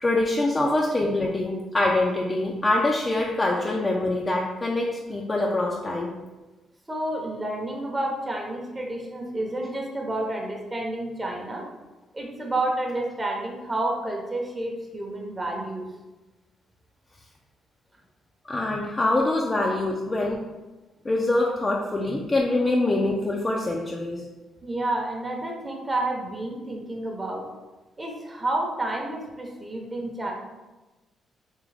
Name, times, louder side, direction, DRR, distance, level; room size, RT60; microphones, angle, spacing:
voice 1, 0.0-6.2 18.5-20.4 21.0-24.3, left 2 dB, 25° left, -2 dB, 0.4 m, -24 dB
voice 2, 6.9-11.6 12.1-15.9 24.6-27.4 28.0-30.3, right 1 dB, 20° right, 0 dB, 0.8 m, -30 dB
3.6 x 3.0 x 3.3 m, 1.1 s
cardioid pair, 90°, 0 cm